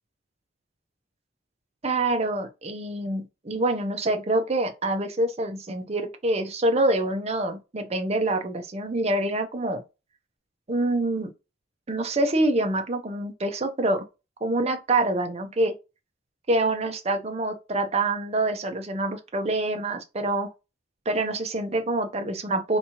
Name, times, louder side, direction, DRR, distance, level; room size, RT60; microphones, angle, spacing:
voice 1, 1.8-9.8 10.7-11.3 11.9-14.0 14.4-15.7 16.5-20.5 21.1-22.8, right 2 dB, 30° right, 0.6 m, -26 dB
3.5 x 2.9 x 2.8 m
head